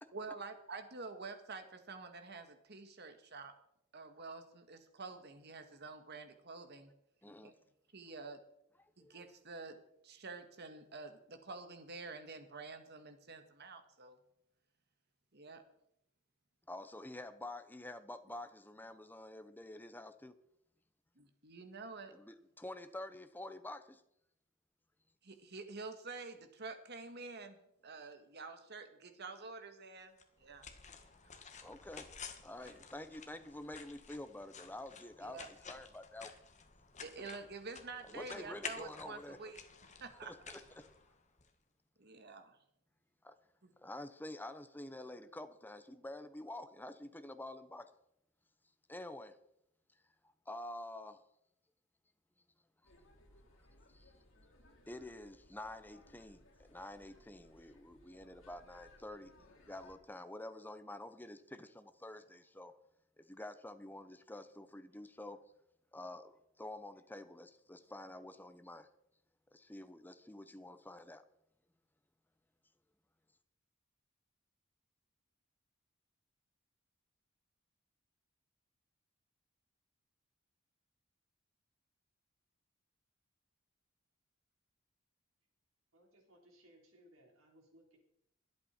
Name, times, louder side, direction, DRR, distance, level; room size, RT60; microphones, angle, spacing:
voice 1, 0.1-3.5 3.9-6.9 7.4-7.5 7.9-8.4 9.0-14.2 15.3-15.6 21.2-22.1 25.2-30.7 32.6-32.8 35.2-35.5 37.0-40.3 42.0-42.6 43.6-43.7, right 4 dB, 55° right, 1.7 m, -48 dB
voice 2, 7.2-7.5 9.0-9.4 16.7-20.4 22.1-24.0 31.6-32.1 32.4-36.3 37.2-37.3 38.1-39.5 40.2-40.9 43.2-43.4 43.8-47.9 48.9-49.4 50.5-51.2 52.8-52.9 53.9-54.1 54.9-59.3 59.6-62.7 63.2-65.4 65.9-68.9 69.5-71.2, left 1 dB, 10° left, 0.9 m, -48 dB
sound 1, 30.2-41.5, left 6 dB, 35° left, 1.7 m, -52 dB
sound 2, 52.8-60.0, left 2 dB, 70° left, 4.1 m, -64 dB
voice 3, 85.9-88.0, right 1 dB, 85° right, 4.3 m, -64 dB
23.0 x 8.5 x 4.5 m
head